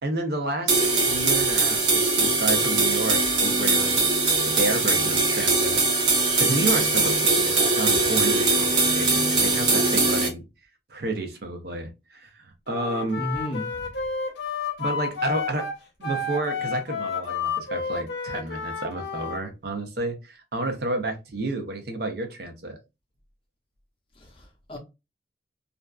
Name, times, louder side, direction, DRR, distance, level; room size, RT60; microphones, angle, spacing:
voice 1, 0.0-4.1 4.5-5.8 6.4-10.4 10.9-13.3 14.8-15.7 16.0-22.8, right 2 dB, 55° right, 0.5 m, -30 dB
sound 1, 0.7-10.3, right 3 dB, 75° right, 0.9 m, -21 dB
Wind instrument woodwind instrument, 12.7-19.4, left 5 dB, 70° left, 0.7 m, -31 dB
voice 2, 13.2-13.7 24.2-24.8, equal, 30° left, 0.6 m, -33 dB
2.5 x 2.2 x 2.3 m
head